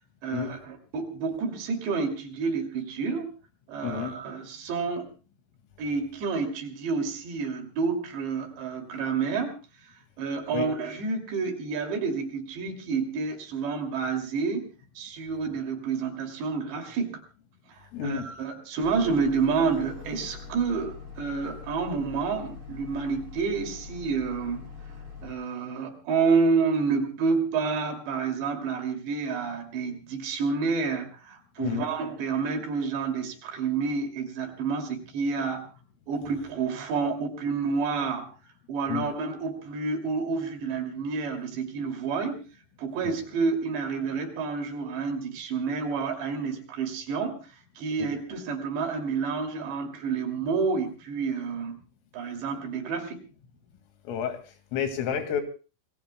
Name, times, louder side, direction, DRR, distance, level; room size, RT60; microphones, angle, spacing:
voice 1, 0.2-3.3 3.7-5.1 5.8-9.6 10.2-17.2 17.7-24.7 25.2-35.7 36.1-38.3 38.7-42.5 42.8-47.5 47.8-51.8 52.1-53.2, right 5 dB, 65° right, 4 dB, 4.7 m, -29 dB
voice 2, 3.8-4.1 10.5-10.7 17.9-18.3 31.6-31.9 38.9-39.1 43.0-43.1 48.0-48.2 54.0-55.4, left 8 dB, 85° left, 7 dB, 4.8 m, -30 dB
sound 1, 18.8-25.3, left 5 dB, 25° right, 8.7 m, -43 dB
27.5 x 20.5 x 2.2 m, 0.34 s
omnidirectional pair, 5.7 m